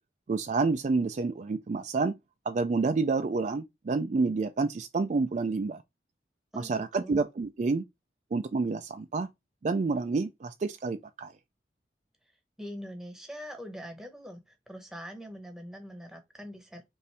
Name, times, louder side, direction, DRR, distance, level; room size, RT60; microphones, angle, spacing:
voice 1, 0.3-2.2 2.5-5.8 6.5-7.8 8.3-9.3 9.6-11.3, right 4 dB, 40° right, 0.3 m, -29 dB
voice 2, 6.5-7.2 12.6-16.9, equal, 5° right, 0.9 m, -43 dB
5.3 x 2.6 x 3.3 m
head